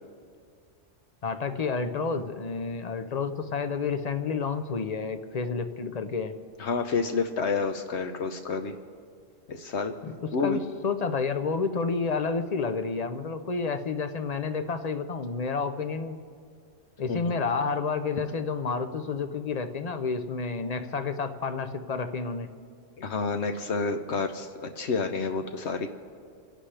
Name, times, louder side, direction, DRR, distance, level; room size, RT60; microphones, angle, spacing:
voice 1, 1.2-6.3 10.0-16.2 17.0-22.5, left 4 dB, 40° left, 9 dB, 0.6 m, -30 dB
voice 2, 6.6-8.7 9.5-9.9 10.3-10.6 17.1-17.2 23.0-25.9, left 4 dB, 70° left, 6 dB, 1.0 m, -29 dB
28.0 x 11.5 x 3.3 m, 2.2 s
omnidirectional pair, 1.3 m